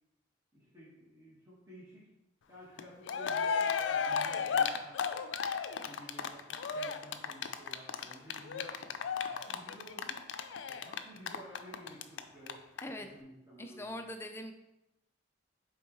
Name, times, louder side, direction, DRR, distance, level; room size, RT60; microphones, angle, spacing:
voice 1, 0.5-2.1 2.5-5.0 5.8-10.2 10.7-14.1, equal, 15° right, -9 dB, 1.5 m, -53 dB
Cheering, 2.8-2.9 3.1-12.2 12.5-12.6 12.8-12.9, left 6 dB, 75° left, 0.4 m, -33 dB
voice 2, 13.6-14.5, left 1 dB, 15° left, 6 dB, 0.4 m, -42 dB
8.9 x 3.6 x 3.0 m, 0.92 s
head